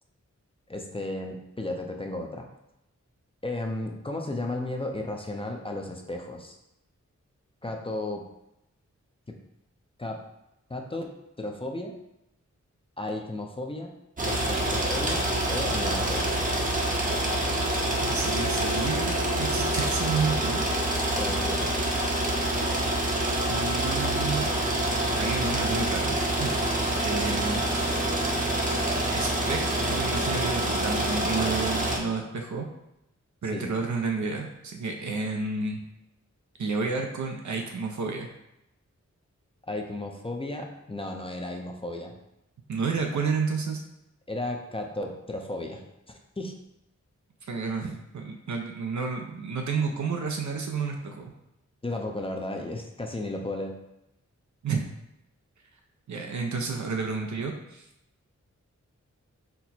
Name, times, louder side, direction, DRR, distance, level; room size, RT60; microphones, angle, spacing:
voice 1, 0.7-2.5 3.4-6.6 7.6-8.2 9.3-9.4 10.0-10.2 10.7-11.1 11.4-11.9 13.0-13.9 14.2-16.4 21.1-21.8 33.5-33.7 39.7-42.1 44.3-45.8 46.4-46.5 51.8-53.8, left 2 dB, 20° left, 2 dB, 0.5 m, -34 dB
sound 1, 14.2-32.0, right 1 dB, 30° right, 0.7 m, -26 dB
voice 2, 18.0-20.6 23.5-24.5 25.1-27.6 29.1-32.7 33.4-35.8 36.6-38.3 42.7-43.8 47.5-51.3 54.6-54.9 56.1-57.9, right 4 dB, 75° right, 2 dB, 0.5 m, -31 dB
4.4 x 2.1 x 4.1 m, 0.85 s
wide cardioid pair, 100°, 30 cm